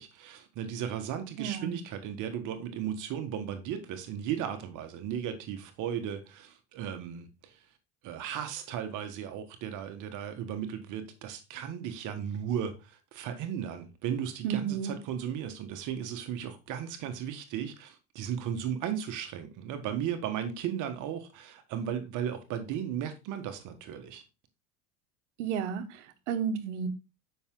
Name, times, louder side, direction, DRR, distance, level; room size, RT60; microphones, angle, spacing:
voice 1, 0.0-7.6 8.0-24.2, right 9 dB, 60° right, 1.5 m, -36 dB
voice 2, 1.4-1.8 14.4-14.9 25.4-26.9, right 7 dB, 85° right, 1.2 m, -32 dB
7.0 x 5.7 x 3.7 m
supercardioid pair, 105°, 35 cm